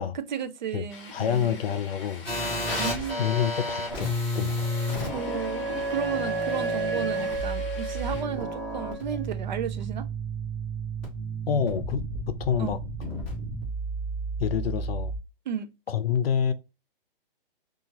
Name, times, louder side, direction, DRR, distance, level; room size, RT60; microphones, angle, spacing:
voice 1, 0.1-1.6 2.7-3.3 5.1-10.1 12.6-12.8 15.5-15.7, right 7 dB, 50° right, 0.4 m, -34 dB
sound 1, 0.9-8.2, left 3 dB, 30° left, 0.8 m, -46 dB
voice 2, 1.1-2.3 3.2-4.7 11.5-12.8 14.4-15.1 15.9-16.5, left 8 dB, 85° left, 0.5 m, -27 dB
sound 2, 2.2-15.2, right 1 dB, 5° left, 0.6 m, -32 dB
Wind instrument woodwind instrument, 4.6-9.2, right 3 dB, 25° right, 0.8 m, -32 dB
2.7 x 2.4 x 2.8 m
hypercardioid pair, 170°, 29 cm